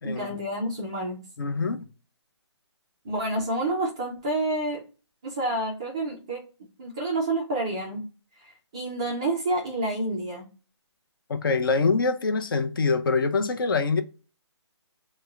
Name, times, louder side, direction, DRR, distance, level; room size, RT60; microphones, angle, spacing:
voice 1, 0.0-1.2 3.0-4.8 5.2-6.4 6.8-8.1 8.7-10.5, right 2 dB, 10° right, 0.3 m, -28 dB
voice 2, 1.4-1.9 11.3-14.0, left 4 dB, 50° left, 0.6 m, -24 dB
3.5 x 2.1 x 3.2 m
hypercardioid pair, 165°, 15 cm